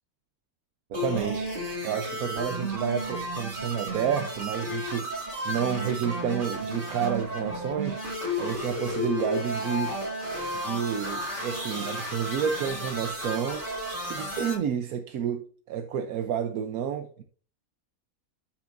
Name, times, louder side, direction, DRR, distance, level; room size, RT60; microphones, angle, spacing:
sound 1, 0.9-14.5, equal, 35° right, 2.7 m, -33 dB
voice 1, 0.9-8.0 8.4-10.0 10.5-17.2, right 8 dB, 85° right, 1.2 m, -30 dB
13.0 x 5.7 x 2.6 m
omnidirectional pair, 1.5 m